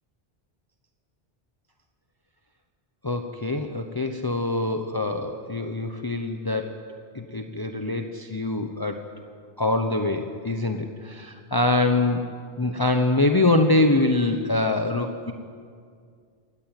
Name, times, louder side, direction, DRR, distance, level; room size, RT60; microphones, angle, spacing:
voice 1, 3.0-6.7 7.1-9.0 9.6-12.2 12.6-15.3, left 2 dB, 20° left, 5 dB, 1.1 m, -24 dB
27.5 x 14.0 x 9.2 m, 2.2 s
omnidirectional pair, 1.0 m